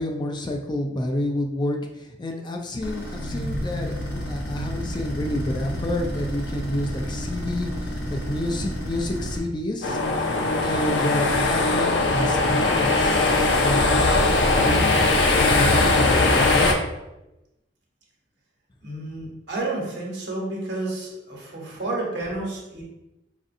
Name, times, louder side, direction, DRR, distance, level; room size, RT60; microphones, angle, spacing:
voice 1, 0.0-7.7 8.1-10.0 10.6-13.3 13.6-13.8 14.4-16.7, left 1 dB, 25° left, 3 dB, 0.4 m, -29 dB
sound 1, 2.8-9.4, equal, 60° left, 0.9 m, -31 dB
sound 2, 9.8-16.7, left 2 dB, 80° left, 0.5 m, -20 dB
voice 2, 18.8-22.8, right 2 dB, 70° right, -3 dB, 1.1 m, -30 dB
4.9 x 2.5 x 2.6 m, 0.94 s
head